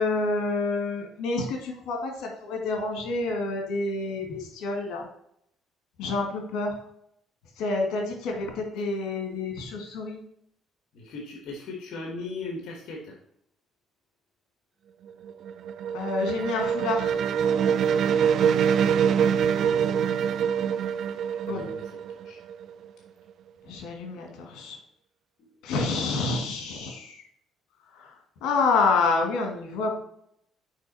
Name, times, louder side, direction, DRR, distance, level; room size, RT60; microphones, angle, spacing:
voice 1, 0.0-5.1 6.0-6.7 7.6-10.2 15.9-17.1 21.4-21.6 23.7-24.8 25.6-27.1 28.4-30.0, left 3 dB, 80° left, 2 dB, 1.9 m, -28 dB
voice 2, 10.9-13.1 18.2-18.6 19.5-20.7 21.5-22.4 25.4-25.6, left 3 dB, 65° left, 0 dB, 1.4 m, -39 dB
sound 1, 15.1-22.8, right 8 dB, 60° right, 0.4 m, -24 dB
6.4 x 4.8 x 4.1 m, 0.73 s
cardioid pair, 115°, 0 cm